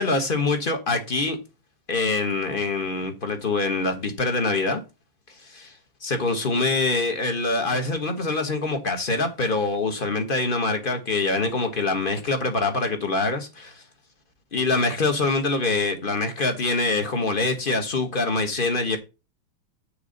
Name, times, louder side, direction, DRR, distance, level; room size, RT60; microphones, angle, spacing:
voice 1, 0.0-1.4 1.9-4.8 6.0-13.8 14.5-19.0, left 3 dB, 30° left, 1.3 m, -24 dB
6.9 x 4.7 x 6.7 m
omnidirectional pair, 2.3 m